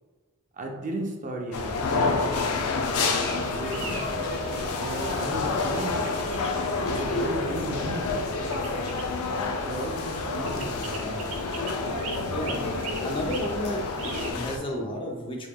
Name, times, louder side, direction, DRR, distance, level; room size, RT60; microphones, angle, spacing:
voice 1, 0.5-2.2 3.4-4.1 4.8-6.1 6.9-8.7 9.7-11.3, right 1 dB, 35° right, 2 dB, 0.4 m, -35 dB
sound 1, 1.5-14.6, left 3 dB, 90° left, 0.4 m, -29 dB
sound 2, 2.0-7.3, equal, 45° left, 1.4 m, -40 dB
sound 3, 3.2-14.3, right 2 dB, 75° right, 0.7 m, -39 dB
voice 2, 12.3-12.6 13.0-15.5, left 1 dB, 25° left, 0 dB, 0.6 m, -32 dB
4.6 x 3.0 x 2.2 m, 1.4 s
head